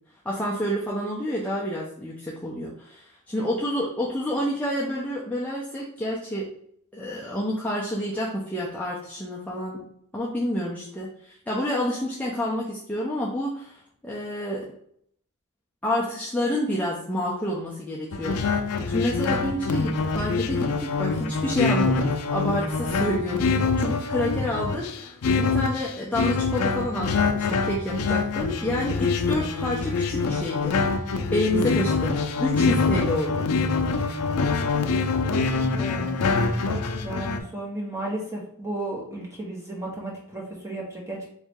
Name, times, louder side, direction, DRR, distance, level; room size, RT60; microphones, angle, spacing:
voice 1, 0.2-6.5 6.9-9.8 10.1-14.7 15.8-32.1 32.4-33.5, left 1 dB, 5° left, -6 dB, 0.6 m, -29 dB
sound 1, 18.1-37.4, left 4 dB, 80° left, 0.5 m, -25 dB
voice 2, 35.8-36.1 37.0-41.3, right 2 dB, 15° right, -3 dB, 1.2 m, -34 dB
4.1 x 2.8 x 3.5 m, 0.68 s
head